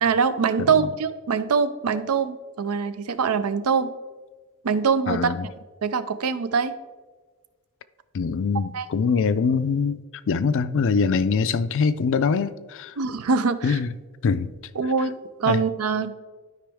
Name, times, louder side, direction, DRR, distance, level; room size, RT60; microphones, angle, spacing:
voice 1, 0.0-3.9 4.6-5.3 5.8-6.7 8.7-8.9 13.0-13.8 14.8-15.1 15.4-16.1, right 5 dB, 80° right, 0.5 m, -23 dB
voice 2, 5.1-5.5 8.1-10.0 10.3-12.9 13.6-13.9 14.2-14.5 15.5-15.6, left 5 dB, 60° left, 0.4 m, -23 dB
12.0 x 5.1 x 3.5 m
head